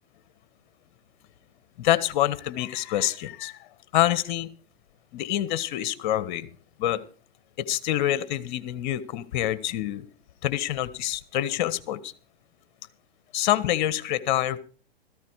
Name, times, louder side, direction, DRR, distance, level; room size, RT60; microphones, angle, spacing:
voice 1, 1.8-3.6 3.9-4.5 5.1-6.5 6.8-7.0 7.6-10.0 10.4-12.1 13.3-14.6, left 13 dB, 50° left, 15 dB, 1.3 m, -26 dB
15.0 x 14.0 x 4.8 m, 0.41 s
hypercardioid pair, 130°, 31 cm